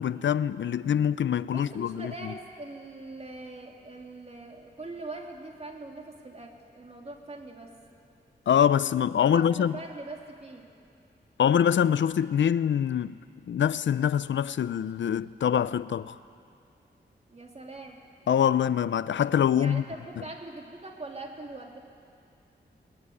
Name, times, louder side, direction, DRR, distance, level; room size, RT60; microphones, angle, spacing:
voice 1, 0.0-2.3 8.5-9.7 11.4-13.2 13.5-16.2 18.3-19.8, left 9 dB, 85° left, 0.5 m, -24 dB
voice 2, 1.4-7.8 9.2-10.7 17.3-18.0 19.5-21.8, right 2 dB, 35° right, 3.3 m, -42 dB
22.0 x 20.0 x 9.7 m
wide cardioid pair, 90°, 19 cm